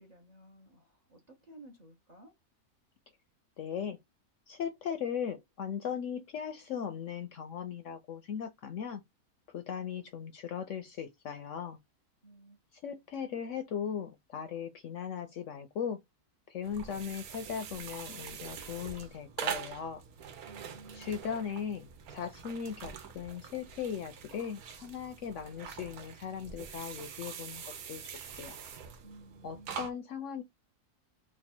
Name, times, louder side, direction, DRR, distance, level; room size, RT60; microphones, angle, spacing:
voice 1, 0.0-2.4 12.2-12.6 20.4-21.2 29.0-29.9, right 2 dB, 35° right, 0.7 m, -55 dB
voice 2, 3.6-4.0 4.5-9.0 9.5-11.8 12.7-16.0 16.5-20.0 20.9-28.6 29.4-30.4, left 7 dB, 65° left, 0.8 m, -38 dB
sound 1, 16.6-29.9, right 8 dB, 70° right, 1.2 m, -44 dB
3.2 x 2.4 x 4.3 m
omnidirectional pair, 1.7 m